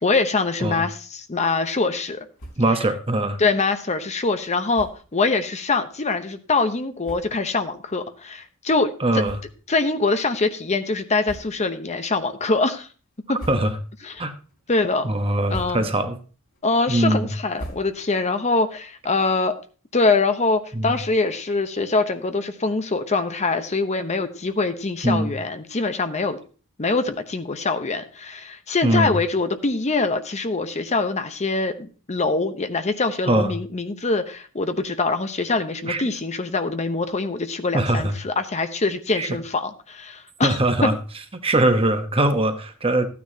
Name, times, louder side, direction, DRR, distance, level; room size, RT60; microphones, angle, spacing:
voice 1, 0.0-2.2 3.4-8.9 9.7-12.9 13.3-13.4 14.0-14.2 14.7-15.1 15.5-15.9 16.6-19.5 19.9-26.4 26.8-40.9, left 3 dB, 30° left, 9 dB, 0.8 m, -24 dB
sound 1, 2.3-2.8 3.2-3.3 3.6-3.7 4.7-5.1 5.9-6.0 6.7-6.8 7.0-7.6 8.1-8.2 9.2-9.9 10.2-10.4 11.2-11.8 12.2-12.7 13.2-14.0 14.4-14.9 15.3-16.1 16.5-18.3, right 1 dB, 70° left, 4.0 m, -41 dB
voice 2, 2.6-3.4 9.0-9.4 13.5-13.8 14.2-14.3 15.0-16.2 16.9-17.3 20.7-20.9 25.0-25.3 28.8-29.1 33.3-33.5 35.8-36.0 37.7-38.1 39.2-39.3 40.4-40.9 41.3-43.1, right 1 dB, 25° right, 8 dB, 1.1 m, -21 dB
14.0 x 9.4 x 2.8 m, 0.36 s
head